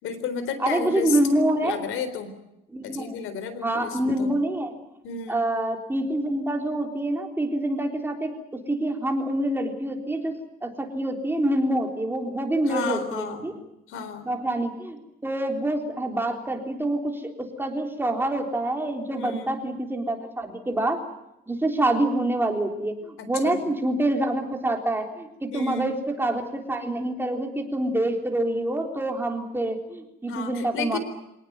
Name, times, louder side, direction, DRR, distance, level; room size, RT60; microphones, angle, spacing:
voice 1, 0.0-1.2 1.6-2.3 2.8-4.4 5.0-5.5 12.7-13.6 13.9-14.3 19.1-19.6 23.2-23.7 25.5-25.9 30.3-31.0, left 6 dB, 80° left, 12 dB, 4.1 m, -32 dB
voice 2, 0.6-1.9 2.7-3.2 3.6-4.7 5.3-10.4 10.6-13.5 14.2-21.0 21.5-31.0, right 1 dB, 10° right, 3 dB, 3.7 m, -26 dB
26.0 x 19.0 x 9.5 m, 0.89 s
cardioid pair, 135°, 21 cm